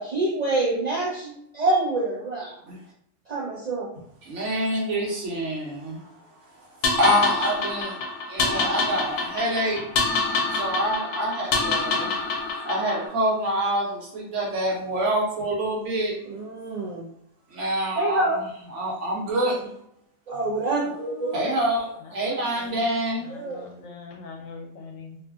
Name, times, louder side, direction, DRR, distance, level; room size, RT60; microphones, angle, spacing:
voice 1, 0.0-2.5 3.3-3.9 16.3-17.1 18.0-18.4 20.3-21.3 23.3-23.6, right 2 dB, 85° right, -4 dB, 0.3 m, -26 dB
voice 2, 4.2-6.0 6.6-6.7 6.9-7.9 8.3-9.8 10.5-12.1 12.6-16.1 17.5-18.4 18.7-19.7 21.3-23.3, right 1 dB, 65° right, -3 dB, 1.1 m, -26 dB
sound 1, 6.8-13.1, left 3 dB, 70° left, 0.8 m, -26 dB
voice 3, 20.7-21.6 22.1-22.8 23.2-25.2, left 4 dB, 90° left, 2 dB, 1.0 m, -42 dB
2.6 x 2.4 x 2.3 m, 0.73 s
omnidirectional pair, 1.4 m